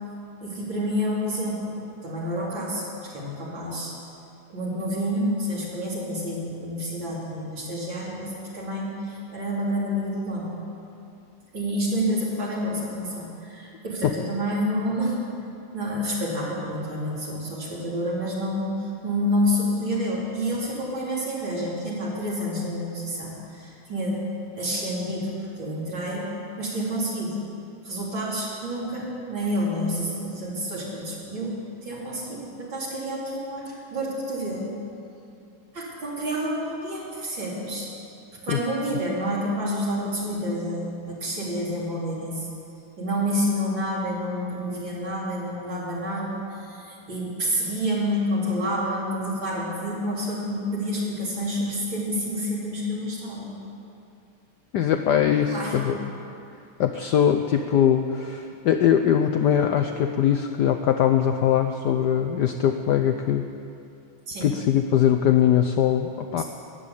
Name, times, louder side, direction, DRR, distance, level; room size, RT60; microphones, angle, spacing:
voice 1, 0.4-1.7 2.0-3.9 4.5-10.5 11.5-15.2 15.7-24.3 24.6-26.3 26.6-27.4 27.8-34.8 35.7-37.9 38.4-42.5 43.0-53.6 55.4-56.0 64.3-64.5 66.4-66.5, equal, 60° right, -6 dB, 4.4 m, -28 dB
voice 2, 54.7-56.0 56.8-63.5 64.4-66.4, left 9 dB, 75° left, 6 dB, 1.0 m, -21 dB
13.5 x 10.5 x 8.3 m, 2.6 s
omnidirectional pair, 2.4 m